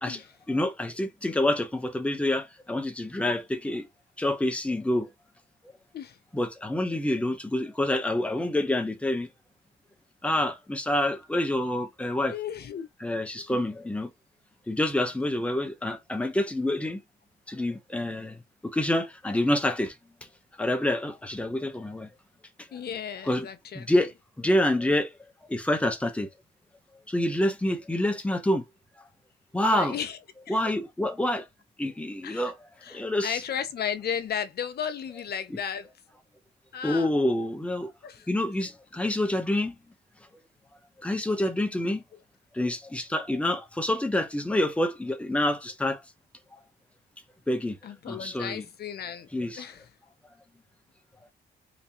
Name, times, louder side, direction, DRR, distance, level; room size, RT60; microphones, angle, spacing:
voice 1, 0.5-3.9 4.2-5.1 6.3-9.3 10.2-12.3 13.0-14.1 14.7-17.0 17.5-18.3 18.7-19.9 20.6-22.1 23.3-23.5 23.7-24.1 24.4-25.1 25.5-26.3 27.1-28.6 29.5-30.0 30.5-31.4 31.8-32.5 32.9-33.4 36.8-37.9 38.3-39.7 41.0-42.0 42.6-46.0 47.5-47.8 48.1-48.6 49.3-49.6, left 1 dB, 5° left, 0.8 m, -27 dB
voice 2, 12.3-12.9 13.5-13.6 22.7-23.9 29.7-30.2 30.5-30.6 32.2-32.5 32.8-35.9 36.7-37.1 38.0-38.3 47.8-49.3 49.6-49.9, left 8 dB, 55° left, 0.7 m, -34 dB
3.3 x 3.0 x 2.8 m
cardioid pair, 90°, 20 cm